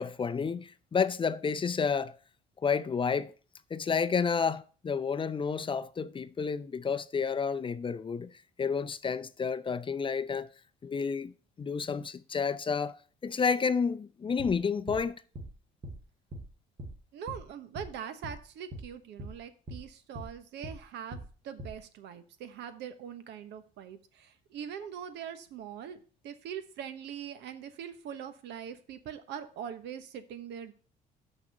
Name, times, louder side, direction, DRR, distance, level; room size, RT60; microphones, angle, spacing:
voice 1, 0.0-2.2 2.6-3.3 3.7-8.3 8.6-10.5 10.8-11.3 11.6-13.0 13.2-15.2, left 5 dB, 30° left, 0.5 m, -30 dB
sound 1, 14.4-14.6 14.9-15.0 15.4-15.5 15.8-16.0 16.3-16.5 16.8-17.0 17.3-17.4 17.8-17.9 18.2-18.4 18.7-18.9 19.2-19.4 19.7-19.8 20.2-20.3 20.6-20.8 21.1-21.3 21.6-21.8, right 1 dB, 35° right, 1.9 m, -41 dB
voice 2, 17.1-30.7, right 8 dB, 70° right, 1.1 m, -42 dB
6.4 x 5.9 x 6.5 m
supercardioid pair, 75°, 18 cm